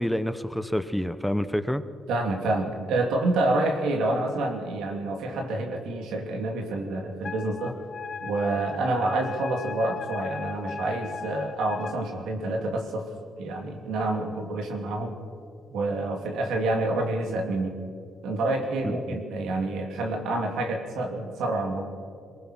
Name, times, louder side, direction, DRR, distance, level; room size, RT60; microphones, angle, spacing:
voice 1, 0.0-1.8 18.8-19.2, equal, ahead, 12 dB, 0.8 m, -28 dB
voice 2, 2.1-7.8 8.2-13.1 13.4-15.2 15.7-17.7 18.2-21.8, right 2 dB, 85° right, 3 dB, 2.9 m, -28 dB
Wind instrument woodwind instrument, 7.2-12.0, left 6 dB, 45° left, 0.9 m, -37 dB
23.0 x 19.0 x 6.2 m, 2.3 s
cardioid pair, 90°, 0 cm